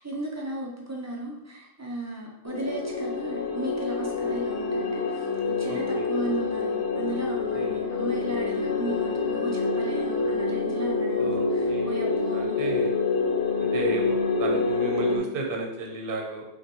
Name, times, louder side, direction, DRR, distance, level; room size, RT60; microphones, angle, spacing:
voice 1, 0.0-12.9, right 1 dB, 25° right, -2 dB, 0.4 m, -36 dB
sound 1, 2.4-15.2, left 4 dB, 75° left, 1.0 m, -27 dB
voice 2, 5.7-6.1 7.5-7.9 11.2-12.9 13.6-16.4, right 3 dB, 55° right, 1 dB, 0.8 m, -33 dB
5.2 x 2.3 x 2.9 m, 0.84 s
omnidirectional pair, 1.2 m